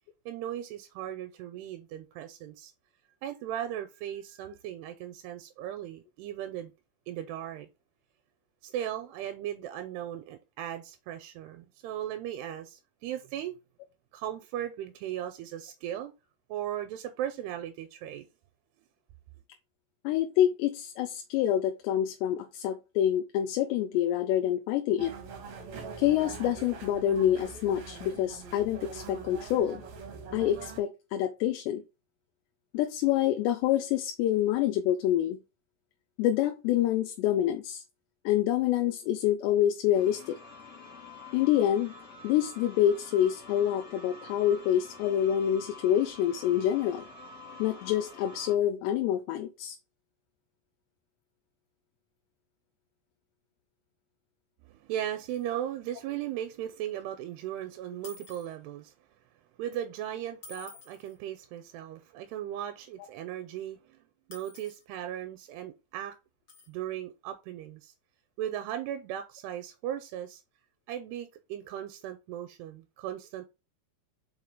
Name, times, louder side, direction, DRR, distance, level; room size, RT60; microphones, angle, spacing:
voice 1, 0.3-2.7 3.2-6.7 7.1-7.7 8.6-13.5 14.1-16.1 16.5-18.2 54.6-58.9 59.6-64.0 64.3-66.2 66.7-67.9 68.4-70.4 70.9-73.4, right 11 dB, 85° right, 2.6 m, -37 dB
voice 2, 20.0-25.1 26.0-29.8 30.3-31.8 32.7-35.4 36.2-37.8 38.3-40.4 41.3-41.9 42.2-47.0 47.6-49.8, left 11 dB, 80° left, 2.8 m, -27 dB
sound 1, 25.0-30.8, right 5 dB, 55° right, 2.1 m, -43 dB
sound 2, 39.9-48.5, left 3 dB, 35° left, 1.8 m, -48 dB
sound 3, 55.2-55.4 57.0-57.1 58.0-58.5 60.4-61.2 64.3-64.8 66.5-66.7, left 4 dB, 50° left, 1.4 m, -50 dB
5.5 x 5.1 x 3.7 m
omnidirectional pair, 5.1 m